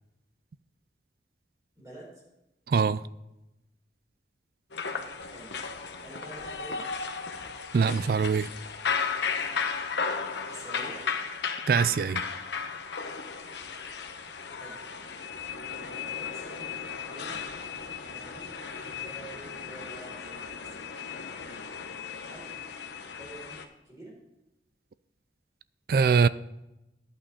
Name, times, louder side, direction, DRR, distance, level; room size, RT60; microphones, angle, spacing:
voice 1, 1.8-2.2 5.3-5.5 6.0-6.8 10.5-11.0 14.6-14.8 15.8-17.4 17.9-18.6 18.8-21.7 22.2-22.5 23.1-24.1, right 1 dB, 20° right, 4.4 m, -48 dB
voice 2, 2.7-3.0 7.7-8.5 11.7-12.2 25.9-26.3, right 5 dB, 55° right, 0.3 m, -23 dB
sound 1, 4.7-23.7, left 5 dB, 80° left, 0.9 m, -35 dB
11.0 x 8.8 x 4.2 m
head